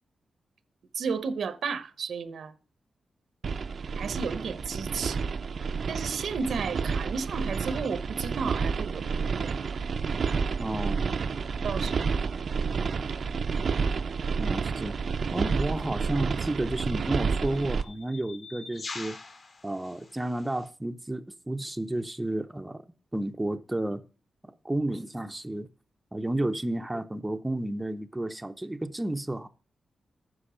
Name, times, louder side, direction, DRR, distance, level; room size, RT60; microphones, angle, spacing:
voice 1, 0.9-2.5 3.9-5.2 5.9-9.6 11.6-11.9, right 5 dB, 80° right, 0.9 m, -33 dB
sound 1, 3.4-17.8, right 5 dB, 60° right, 0.6 m, -30 dB
voice 2, 10.6-11.1 14.4-15.0 15.3-19.2 19.6-22.8 23.1-24.0 24.4-25.7 26.1-29.5, right 1 dB, 10° right, 0.6 m, -31 dB
sound 2, 15.3-15.5 16.5-20.7, left 3 dB, 50° left, 2.1 m, -45 dB
9.9 x 6.2 x 4.9 m
wide cardioid pair, 135°, 0 cm